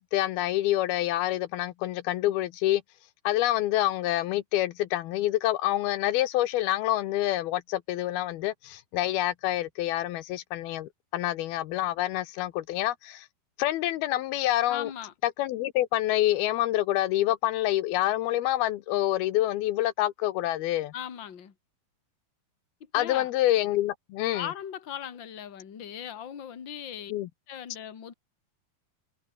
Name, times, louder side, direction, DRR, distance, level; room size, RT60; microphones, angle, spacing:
voice 1, 0.0-2.8 3.2-13.3 13.6-14.9 15.2-20.9 22.9-24.5 27.1-27.3, left 14 dB, 80° left, 2.8 m, -27 dB
voice 2, 14.7-15.1 20.9-21.5 22.9-23.3 24.3-27.1 27.5-28.1, left 9 dB, 35° left, 2.4 m, -38 dB
omnidirectional pair, 4.4 m